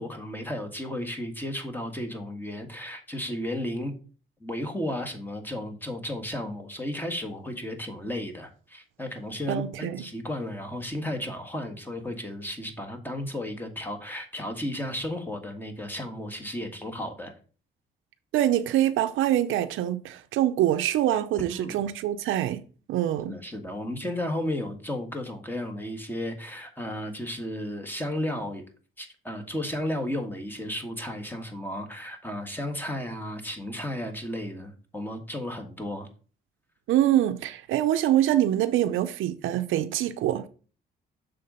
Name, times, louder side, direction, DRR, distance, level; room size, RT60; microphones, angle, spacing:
voice 1, 0.0-3.9 4.4-17.3 21.5-21.8 23.3-28.6 29.0-36.1, left 1 dB, 10° left, 1.6 m, -34 dB
voice 2, 9.5-10.0 18.3-22.6 22.9-23.4 36.9-40.5, right 12 dB, 85° right, 0.6 m, -25 dB
6.6 x 3.8 x 5.3 m
cardioid pair, 90°, 20 cm